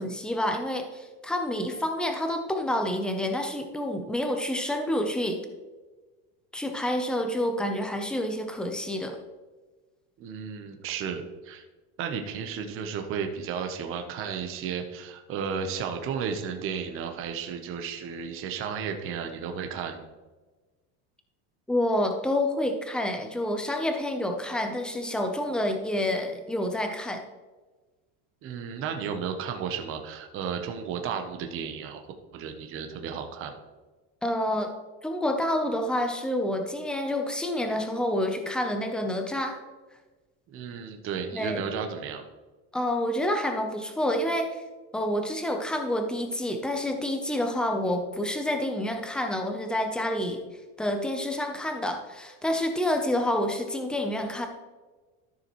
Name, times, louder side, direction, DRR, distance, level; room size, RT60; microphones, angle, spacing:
voice 1, 0.0-5.4 6.5-9.2 21.7-27.2 34.2-34.7 35.0-39.6 41.3-41.6 42.7-44.6 44.9-50.4 50.8-54.5, left 1 dB, ahead, 5 dB, 0.6 m, -28 dB
voice 2, 10.2-11.6 12.0-20.1 28.4-32.0 32.3-33.6 40.5-42.2, right 6 dB, 35° right, 5 dB, 0.9 m, -33 dB
13.0 x 6.8 x 3.1 m, 1.2 s
cardioid pair, 170°, 37 cm